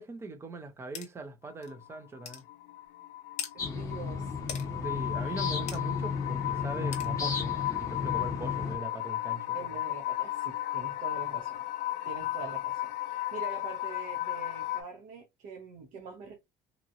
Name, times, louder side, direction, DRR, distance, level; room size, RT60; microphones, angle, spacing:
voice 1, 0.0-2.4 4.8-9.7, right 2 dB, 20° right, 0.5 m, -41 dB
sound 1, 0.9-1.1 1.6-1.7 2.2-2.4 3.4-3.5 4.5-4.7 5.7-5.8 6.9-7.1, left 8 dB, 55° left, 0.9 m, -38 dB
sound 2, 1.4-14.8, left 15 dB, 75° left, 0.4 m, -35 dB
voice 2, 3.5-4.4 5.2-5.5 9.5-11.6 12.0-16.4, right 5 dB, 70° right, 0.8 m, -45 dB
sound 3, 3.6-8.8, left 5 dB, 25° left, 1.0 m, -34 dB
2.9 x 2.6 x 2.5 m
cardioid pair, 165°, 14 cm